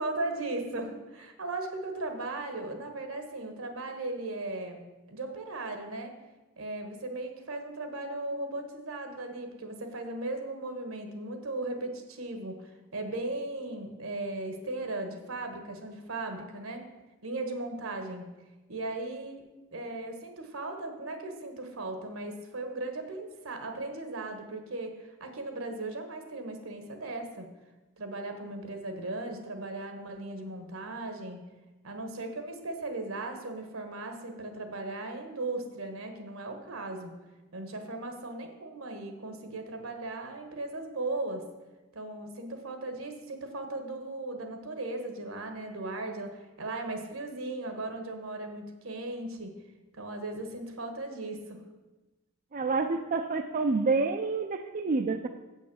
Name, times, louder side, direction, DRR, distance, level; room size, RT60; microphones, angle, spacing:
voice 1, 0.0-4.8 5.1-6.1 6.6-16.8 17.2-18.2 18.7-19.4 19.7-27.5 28.0-31.4 31.8-37.1 37.5-41.4 41.9-49.5 49.9-51.6, right 2 dB, 80° right, 6 dB, 1.4 m, -37 dB
voice 2, 52.5-55.3, right 3 dB, 40° right, 7 dB, 0.4 m, -28 dB
7.7 x 6.3 x 6.9 m, 1.1 s
head